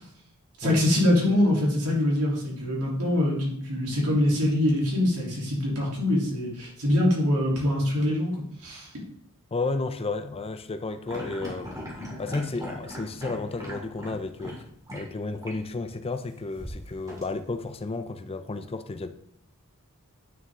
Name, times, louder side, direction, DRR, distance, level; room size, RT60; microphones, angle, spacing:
voice 1, 0.6-8.3 8.6-8.9, left 1 dB, 90° right, 3.3 m, -24 dB
voice 2, 9.5-11.8 12.2-19.1, left 3 dB, 25° left, 0.5 m, -32 dB
sound 1, 11.0-14.6 14.9-15.0 15.4-15.6 16.6-17.7, equal, 15° right, 2.3 m, -39 dB
9.2 x 6.2 x 3.7 m
head